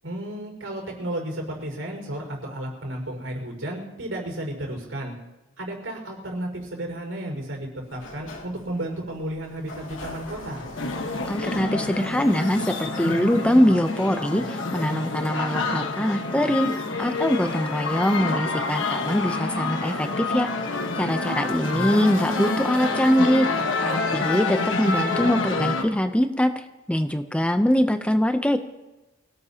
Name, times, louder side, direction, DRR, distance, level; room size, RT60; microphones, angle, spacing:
voice 1, 0.0-5.1 5.6-10.6 21.7-22.1, right 1 dB, 80° right, 1 dB, 5.2 m, -33 dB
Sliding door, 7.8-13.5, left 2 dB, 90° left, 2.4 m, -43 dB
sound 1, 10.8-25.8, left 3 dB, 70° left, 1.4 m, -27 dB
voice 2, 11.3-16.7 17.0-20.5 21.0-23.5 23.8-26.5 26.9-28.6, equal, 5° left, 8 dB, 0.6 m, -23 dB
25.0 x 17.5 x 2.9 m, 1.0 s
head